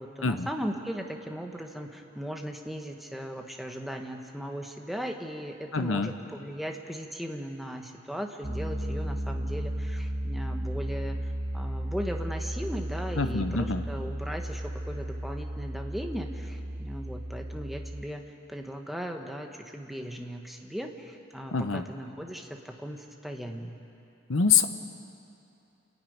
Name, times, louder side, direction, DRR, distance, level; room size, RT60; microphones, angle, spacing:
voice 1, 0.0-11.2 11.5-18.2 18.5-23.8, equal, ahead, 3 dB, 1.2 m, -37 dB
voice 2, 5.7-6.1 13.2-13.8 21.5-21.8 24.3-24.6, left 5 dB, 75° left, 8 dB, 0.9 m, -25 dB
Piano, 8.4-18.0, right 1 dB, 45° right, 1.4 m, -34 dB
28.0 x 10.5 x 9.3 m, 2.7 s
head